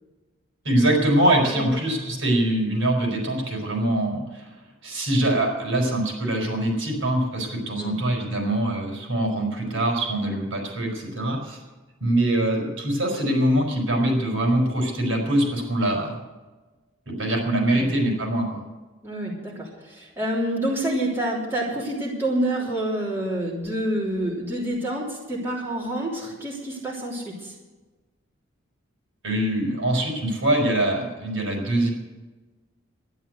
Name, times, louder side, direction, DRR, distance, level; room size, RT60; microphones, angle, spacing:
voice 1, 0.6-4.6 4.8-11.6 12.0-16.2 17.1-18.6 29.2-31.9, right 1 dB, 70° right, 0 dB, 5.3 m, -23 dB
voice 2, 19.0-27.5, right 1 dB, 10° right, -6 dB, 3.3 m, -27 dB
12.5 x 11.0 x 8.0 m, 1.2 s
head